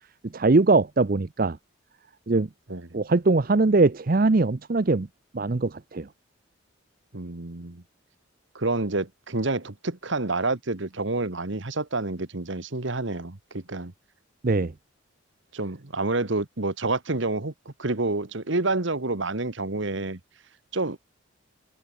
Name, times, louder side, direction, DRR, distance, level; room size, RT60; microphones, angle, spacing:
voice 1, 0.3-1.6 2.3-2.5 2.9-5.1 5.3-6.1 14.4-14.7, right 3 dB, 45° right, 0.6 m, -21 dB
voice 2, 7.1-7.8 8.5-13.9 15.5-20.2 20.7-21.0, right 2 dB, 60° right, 1.4 m, -28 dB
head